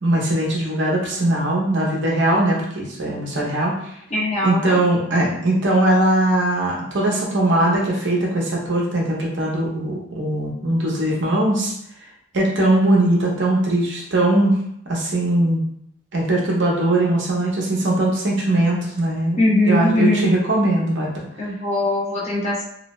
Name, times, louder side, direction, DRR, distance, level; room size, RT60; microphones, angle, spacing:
voice 1, 0.0-3.7 4.4-11.7 12.3-14.6 14.9-15.6 16.1-19.4 19.6-21.2, right 1 dB, 60° right, -3 dB, 0.7 m, -20 dB
voice 2, 4.1-4.8 19.4-20.3 21.4-22.6, left 1 dB, 35° left, -5 dB, 0.7 m, -20 dB
2.6 x 2.1 x 3.0 m, 0.74 s
head